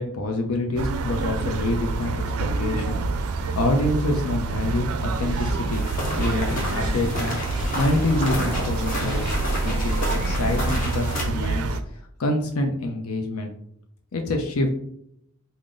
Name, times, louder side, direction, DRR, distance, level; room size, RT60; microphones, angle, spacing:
voice 1, 0.0-3.0 3.3-5.8 6.2-9.3 9.6-11.8 12.2-13.5 14.1-14.7, left 2 dB, 85° left, 3 dB, 0.6 m, -26 dB
sound 1, 0.8-11.8, right 3 dB, 90° right, 0.4 m, -27 dB
sound 2, 5.1-7.0 7.4-10.1, equal, 25° right, 1.2 m, -34 dB
sound 3, 5.7-11.2, equal, 40° left, 1.0 m, -31 dB
3.7 x 2.0 x 3.8 m, 0.71 s
head